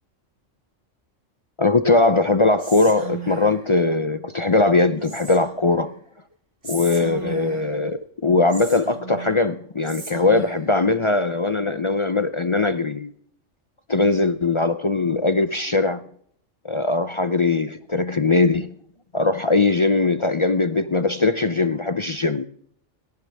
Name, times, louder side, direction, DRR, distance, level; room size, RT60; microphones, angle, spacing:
voice 1, 1.6-5.9 6.6-13.1 13.9-16.0 16.6-18.7 19.1-22.4, left 3 dB, 35° left, 0.5 m, -20 dB
Whispering, 2.6-3.7 5.0-5.7 6.6-7.8 8.5-9.4 9.8-10.7, right 3 dB, 70° right, 2.9 m, -36 dB
27.5 x 10.5 x 3.4 m
omnidirectional pair, 1.3 m